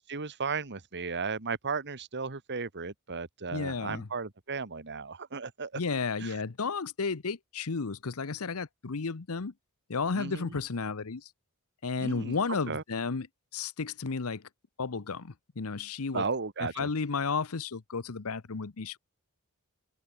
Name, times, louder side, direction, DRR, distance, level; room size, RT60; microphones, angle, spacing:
voice 1, 0.0-5.8 10.2-10.4 12.0-12.4 12.7-12.8 16.1-16.9, right 4 dB, 50° right, 1.8 m, -35 dB
voice 2, 3.5-4.1 5.7-9.5 9.9-11.3 11.8-13.3 13.5-14.5 14.8-16.2 16.6-19.0, left 4 dB, 70° left, 0.9 m, -33 dB
open air
head